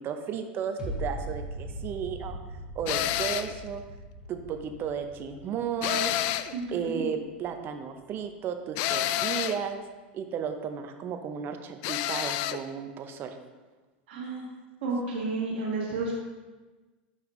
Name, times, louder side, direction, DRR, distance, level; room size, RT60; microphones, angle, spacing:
voice 1, 0.0-2.4 2.7-3.8 4.3-6.2 6.7-9.8 10.1-13.4, right 7 dB, 40° right, 6 dB, 0.7 m, -34 dB
sound 1, 0.8-7.8 8.3-8.4, equal, 15° right, 2.0 m, -40 dB
sound 2, 2.9-3.6 5.8-6.6 8.8-9.6 11.8-12.6, left 12 dB, 55° left, 0.3 m, -29 dB
voice 2, 6.5-7.1 14.1-14.4 14.8-16.2, right 3 dB, 75° right, -5 dB, 1.8 m, -31 dB
6.9 x 5.6 x 3.1 m, 1.2 s
hypercardioid pair, 110°, 6 cm